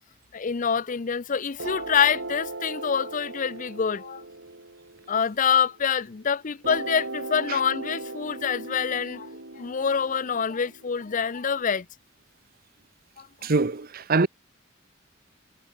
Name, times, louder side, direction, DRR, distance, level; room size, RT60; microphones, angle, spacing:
voice 1, 0.3-4.2 5.1-9.3 9.6-11.9 13.2-13.3, left 7 dB, 40° left, 0.5 m, -26 dB
sound 1, 1.6-6.0 6.6-11.6, right 2 dB, 75° right, 3.4 m, -38 dB
voice 2, 13.4-14.3, right 3 dB, 50° right, 0.8 m, -23 dB
head